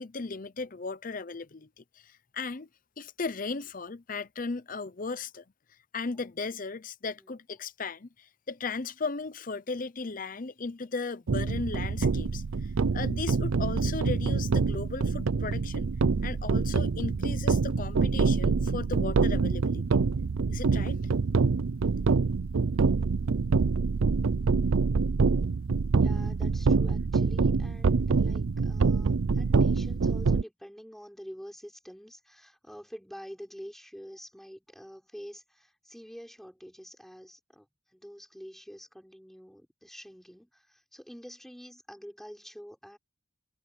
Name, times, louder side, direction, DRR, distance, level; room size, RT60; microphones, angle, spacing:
voice 1, 0.0-2.7 3.0-5.4 5.9-12.4 12.9-15.9 16.2-20.0 20.5-21.0, left 4 dB, 40° left, 0.7 m, -36 dB
sound 1, 11.3-30.4, right 4 dB, 85° right, 0.5 m, -26 dB
voice 2, 26.0-37.7 37.9-43.0, equal, ahead, 6.0 m, -47 dB
head